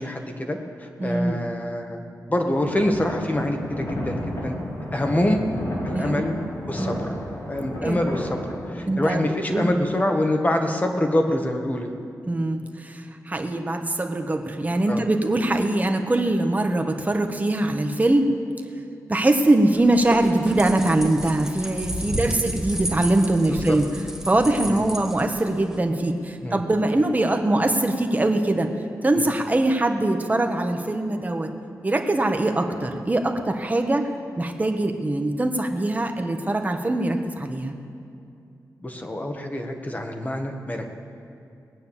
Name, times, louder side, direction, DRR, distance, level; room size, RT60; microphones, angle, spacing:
voice 1, 0.0-2.0 2.3-4.6 4.9-5.5 5.8-6.3 6.7-7.1 7.5-11.9 14.9-15.0 22.1-22.4 23.5-23.8 24.6-24.9 26.4-26.6 29.1-29.3 38.8-40.9, left 1 dB, 25° left, 4 dB, 1.6 m, -26 dB
voice 2, 1.0-1.4 5.9-6.3 6.8-7.0 7.8-8.0 8.9-9.2 9.5-9.7 12.3-13.0 13.3-18.3 19.1-23.8 24.3-28.7 29.0-31.5 31.8-34.0 34.4-37.8, right 2 dB, 25° right, 4 dB, 1.3 m, -22 dB
sound 1, 2.5-8.7, equal, 60° left, 4.1 m, -32 dB
sound 2, 19.8-25.8, right 1 dB, 5° right, 1.9 m, -33 dB
19.0 x 9.1 x 7.3 m, 2.6 s
wide cardioid pair, 90°, 7 cm